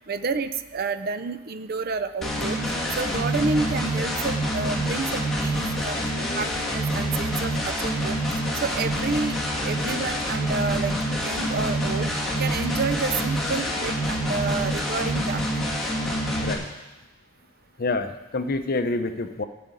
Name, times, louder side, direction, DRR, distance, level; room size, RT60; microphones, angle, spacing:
voice 1, 0.1-2.6 3.0-6.0 6.3-8.2 8.6-9.4 9.6-10.9 11.2-12.1 12.4-15.8, right 4 dB, 45° right, 11 dB, 0.6 m, -29 dB
sound 1, 2.2-16.5, equal, ahead, 2.3 m, -26 dB
voice 2, 17.8-19.4, left 3 dB, 45° left, 9 dB, 0.7 m, -27 dB
13.5 x 5.1 x 9.1 m, 1.1 s
head